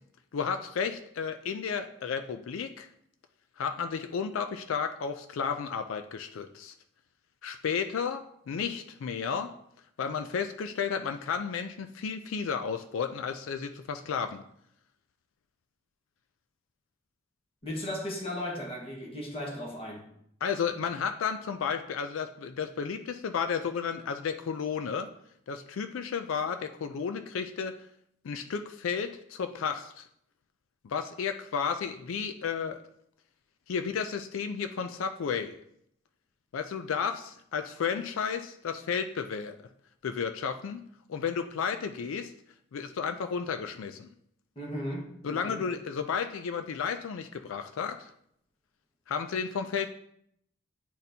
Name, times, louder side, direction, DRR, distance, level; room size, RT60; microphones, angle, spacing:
voice 1, 0.3-2.9 3.6-6.7 7.4-9.5 10.0-14.4 20.4-25.1 25.5-27.7 28.2-30.1 30.8-32.8 33.7-35.6 36.5-39.6 40.0-40.8 41.1-42.3 42.7-44.1 45.2-48.1 49.1-49.9, left 6 dB, 85° left, 0.4 m, -32 dB
voice 2, 17.6-20.0 44.5-45.6, left 1 dB, 30° left, 1.4 m, -36 dB
10.0 x 4.2 x 2.7 m
head